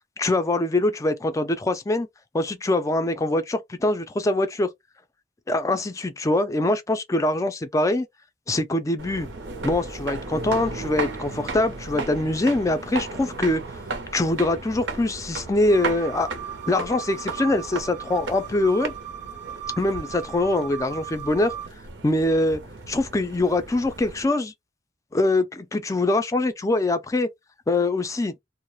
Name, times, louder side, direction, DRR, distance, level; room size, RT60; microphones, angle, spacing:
voice 1, 0.2-2.1 2.3-4.7 5.5-8.1 8.5-9.3 9.6-13.6 14.1-16.3 16.7-18.9 19.8-21.5 22.0-22.6 22.9-24.5 25.1-27.3 27.7-28.4, left 2 dB, 20° left, 0.4 m, -23 dB
sound 1, 9.0-24.3, right 3 dB, 85° right, 0.7 m, -35 dB
sound 2, 15.7-21.7, right 10 dB, 40° right, 0.5 m, -38 dB
2.3 x 2.1 x 3.0 m
head